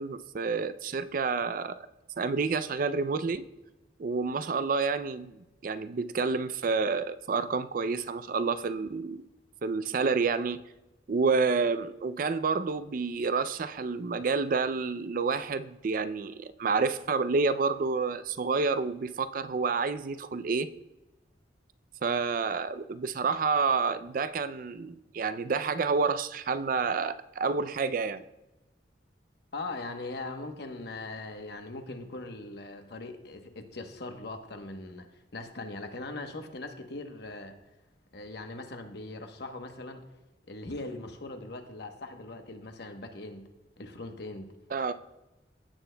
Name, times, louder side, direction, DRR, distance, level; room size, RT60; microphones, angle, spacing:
voice 1, 0.0-1.9 2.2-3.5 4.0-9.2 9.6-10.6 11.1-20.7 22.0-28.2 44.7-44.9, right 4 dB, 50° right, 0.4 m, -29 dB
voice 2, 29.5-35.1 35.3-37.6 38.1-40.0 40.5-43.5 43.8-44.5, left 2 dB, 60° left, 1.0 m, -40 dB
16.0 x 8.8 x 2.2 m
head